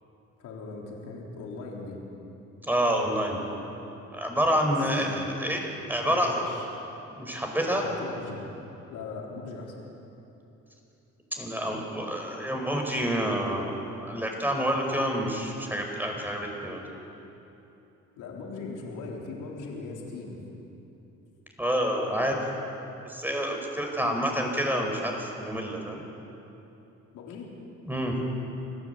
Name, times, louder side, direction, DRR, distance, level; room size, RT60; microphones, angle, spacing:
voice 1, 0.4-2.0 4.6-5.2 5.9-6.7 7.7-8.4 8.9-9.7 18.2-20.4 24.0-24.2 27.1-27.5, left 4 dB, 85° left, -2 dB, 3.8 m, -39 dB
voice 2, 2.6-3.4 4.1-6.4 7.1-7.8 11.4-13.7 14.0-16.8 21.6-22.4 23.0-26.0 27.9-28.2, equal, 5° right, 2 dB, 5.0 m, -28 dB
25.5 x 16.0 x 8.1 m, 3.0 s
cardioid pair, 90°, 30 cm